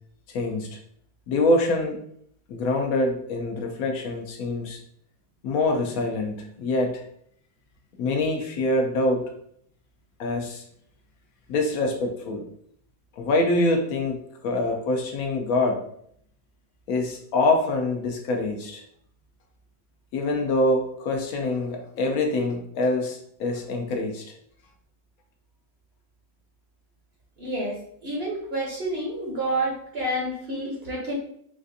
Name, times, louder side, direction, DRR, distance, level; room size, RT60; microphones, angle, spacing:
voice 1, 0.3-0.8 1.3-2.0 2.5-4.8 5.4-7.0 8.0-9.2 10.2-10.6 11.5-12.4 13.2-15.8 16.9-18.8 20.1-24.2, left 2 dB, 70° left, 2 dB, 1.0 m, -25 dB
voice 2, 27.4-31.1, right 1 dB, 50° right, -2 dB, 0.8 m, -29 dB
4.1 x 2.5 x 2.6 m, 0.67 s
omnidirectional pair, 1.6 m